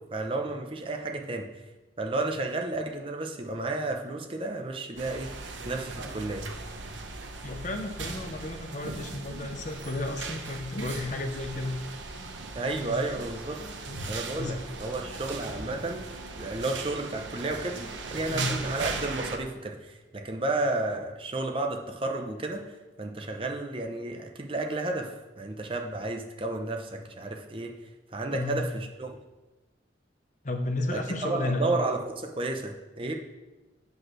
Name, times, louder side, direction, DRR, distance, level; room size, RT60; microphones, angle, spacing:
voice 1, 0.1-1.5 2.0-5.3 5.6-6.5 12.5-13.6 14.1-16.1 16.4-27.7 28.1-29.2 30.9-33.1, right 2 dB, 30° right, 3 dB, 0.7 m, -32 dB
sound 1, 5.0-19.4, right 3 dB, 90° right, 0.9 m, -38 dB
voice 2, 7.4-11.7 12.8-13.0 13.8-14.0 14.4-14.5 18.3-18.5 28.3-28.6 30.4-31.7, left 2 dB, 40° left, 5 dB, 0.8 m, -32 dB
8.2 x 5.3 x 6.1 m, 1.1 s
head